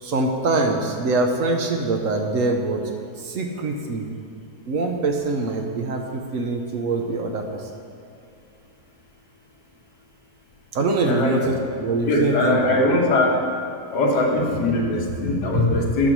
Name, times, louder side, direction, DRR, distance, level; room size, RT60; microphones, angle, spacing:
voice 1, 0.0-2.8 3.2-4.1 4.7-7.7 10.7-12.9, right 3 dB, 60° right, 3 dB, 1.1 m, -24 dB
voice 2, 11.0-11.5 12.1-13.4 13.9-16.1, left 2 dB, 85° left, -1 dB, 1.9 m, -21 dB
8.9 x 6.7 x 6.1 m, 2.5 s
omnidirectional pair, 1.8 m